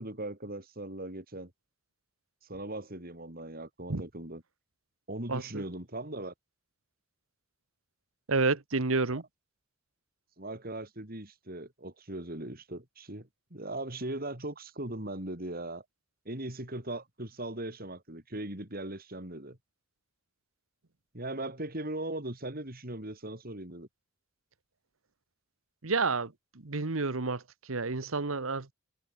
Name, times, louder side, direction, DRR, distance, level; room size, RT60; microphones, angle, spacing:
voice 1, 0.0-1.5 2.4-4.4 5.1-6.3 10.4-15.8 16.2-19.6 21.1-23.9, right 1 dB, 45° right, 4.4 m, -39 dB
voice 2, 5.3-5.6 8.3-9.2 25.8-28.7, right 3 dB, 75° right, 1.3 m, -30 dB
head